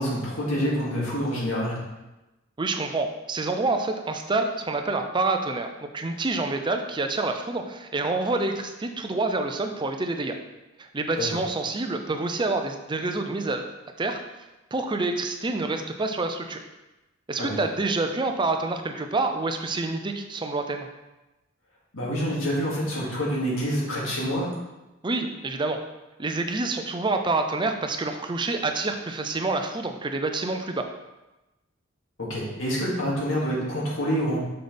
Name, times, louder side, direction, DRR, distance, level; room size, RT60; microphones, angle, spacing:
voice 1, 0.0-1.8 11.2-11.3 17.4-17.5 21.9-24.5 32.2-34.4, equal, 80° left, -5 dB, 2.3 m, -27 dB
voice 2, 2.6-10.4 10.8-13.6 14.0-14.2 14.7-16.6 17.3-20.9 25.0-25.8 26.2-30.8, right 3 dB, 25° right, 5 dB, 0.5 m, -27 dB
6.7 x 6.0 x 3.4 m, 1.0 s
head